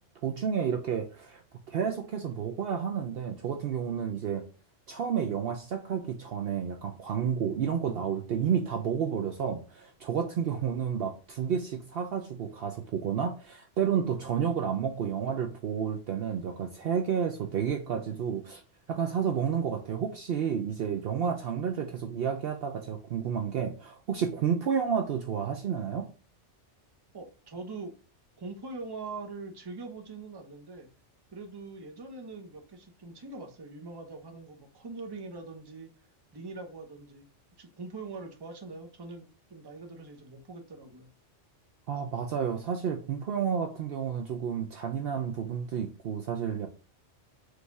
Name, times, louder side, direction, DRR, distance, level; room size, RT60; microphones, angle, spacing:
voice 1, 0.2-1.4 1.7-4.5 4.9-18.6 18.9-26.1 41.9-46.7, right 7 dB, 60° right, 0.7 m, -31 dB
voice 2, 27.1-27.9 28.4-30.9 31.3-35.9 36.3-37.3 37.6-41.1, right 3 dB, 25° right, 0.7 m, -42 dB
4.8 x 2.6 x 3.4 m
omnidirectional pair, 1.2 m